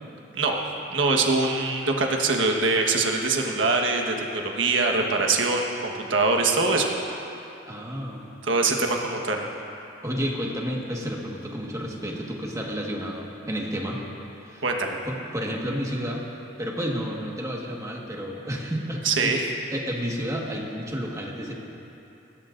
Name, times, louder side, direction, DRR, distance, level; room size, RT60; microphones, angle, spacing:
voice 1, 0.9-6.9 8.4-9.4 14.6-15.0 19.0-19.4, right 3 dB, 80° right, 1 dB, 1.4 m, -23 dB
voice 2, 7.7-8.3 10.0-14.0 14.4-14.6 15.1-16.3 16.6-21.6, equal, 15° right, -2 dB, 1.6 m, -31 dB
20.0 x 16.5 x 2.6 m, 2.8 s
head